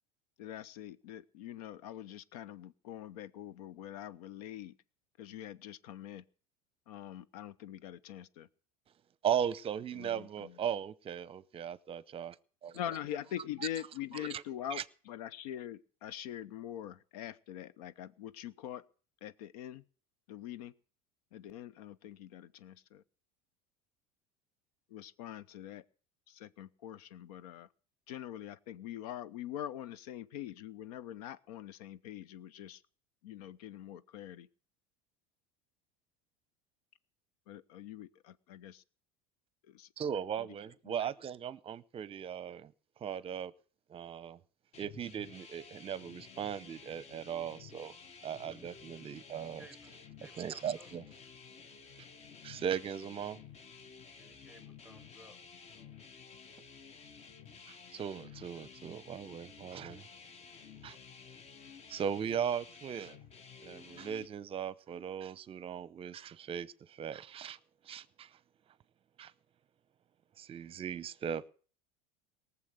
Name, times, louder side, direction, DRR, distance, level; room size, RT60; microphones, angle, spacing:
voice 1, 0.4-4.7 5.2-6.2 6.9-8.5 10.0-10.5 12.7-18.8 19.2-19.8 20.3-20.7 21.3-23.0 24.9-25.8 26.3-27.7 28.1-32.8 33.2-34.5 37.5-38.8 39.7-39.9 40.9-41.0, left 11 dB, 85° left, 0.9 m, -44 dB
voice 2, 9.2-12.4 12.6-13.0 13.6-13.7 14.1-14.4 14.7-14.8 40.0-42.7 43.0-43.5 43.9-44.4 44.8-47.9 48.2-49.6 50.4-51.0 52.4-53.4 57.7-60.0 60.8-61.0 61.9-63.2 63.6-67.6 67.8-68.3 69.2-69.3 70.4-71.5, right 8 dB, 30° right, 0.7 m, -38 dB
sound 1, 44.7-64.3, left 6 dB, 35° left, 1.2 m, -53 dB
voice 3, 49.6-49.9 50.2-50.9 54.2-55.4 55.7-56.0 56.6-56.7, equal, 5° right, 1.2 m, -58 dB
18.5 x 7.2 x 8.0 m
supercardioid pair, 115°, 19 cm